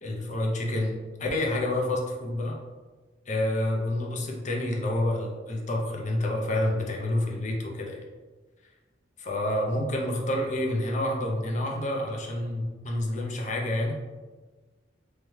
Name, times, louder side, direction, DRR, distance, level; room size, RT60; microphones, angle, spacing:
voice 1, 0.0-2.6 3.3-8.0 9.2-14.0, left 1 dB, 40° left, 0 dB, 0.6 m, -28 dB
3.4 x 3.2 x 3.1 m, 1.3 s
head